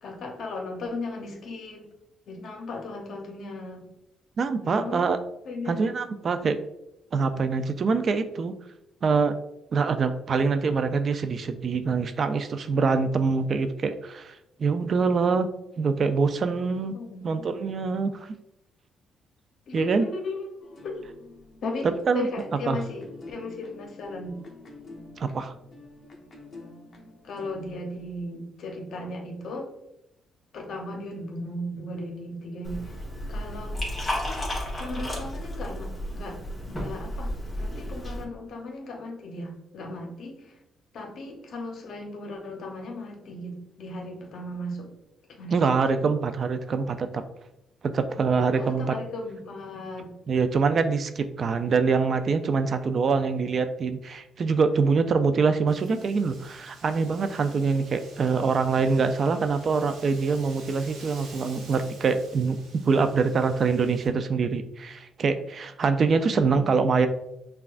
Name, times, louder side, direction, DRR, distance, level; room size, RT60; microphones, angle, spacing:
voice 1, 0.0-1.9 2.3-3.9 4.6-5.1 5.5-5.8 16.9-17.6 19.7-21.0 21.6-24.4 27.2-29.7 30.5-32.8 33.3-33.8 34.2-34.4 34.8-40.5 40.9-44.9 45.4-45.6 46.0-46.1 48.5-50.1 61.5-61.8 66.2-66.7, left 2 dB, 65° left, 2 dB, 0.8 m, -36 dB
voice 2, 4.4-5.2 5.7-6.6 7.1-8.5 9.0-9.4 9.7-15.5 15.8-16.9 17.2-18.3 19.7-20.1 21.8-22.3 22.7-22.8 25.2-25.5 45.5-47.2 47.8-49.0 50.3-62.6 62.8-67.1, right 5 dB, 50° right, 9 dB, 0.3 m, -24 dB
sound 1, 20.6-28.3, left 2 dB, 40° left, 0.8 m, -48 dB
Liquid, 32.6-38.2, equal, 15° left, 1.3 m, -33 dB
Wind, 55.7-64.1, right 3 dB, 85° right, 1.0 m, -50 dB
5.7 x 2.3 x 2.5 m, 0.85 s
cardioid pair, 90°, 0 cm